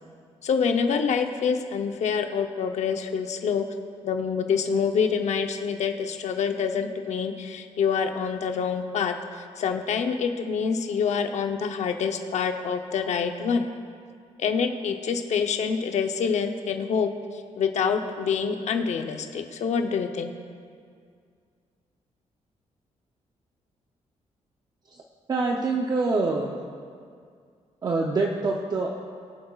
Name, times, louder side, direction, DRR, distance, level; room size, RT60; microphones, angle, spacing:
voice 1, 0.4-3.7 4.0-13.7 14.4-17.1 17.6-20.3, left 6 dB, 65° left, 5 dB, 0.7 m, -26 dB
voice 2, 25.3-26.6 27.8-29.0, right 3 dB, 30° right, 0 dB, 0.6 m, -25 dB
23.0 x 7.8 x 2.4 m, 2.2 s
wide cardioid pair, 165°, 13 cm